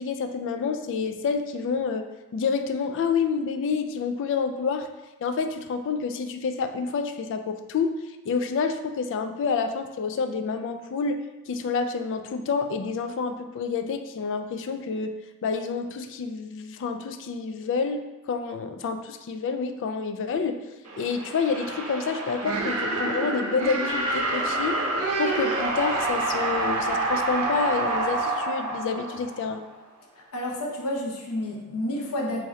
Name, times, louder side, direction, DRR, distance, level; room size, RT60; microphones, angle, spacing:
voice 1, 0.0-2.0 2.3-4.9 5.2-8.0 8.3-11.2 11.5-15.1 15.4-20.6 21.0-24.8 25.1-29.6, left 5 dB, 55° left, 7 dB, 0.3 m, -28 dB
sound 1, 20.8-29.7, right 2 dB, 80° right, 0.7 m, -27 dB
voice 2, 30.3-32.5, left 1 dB, 90° left, -1 dB, 0.7 m, -30 dB
3.1 x 2.7 x 3.7 m, 1.1 s
head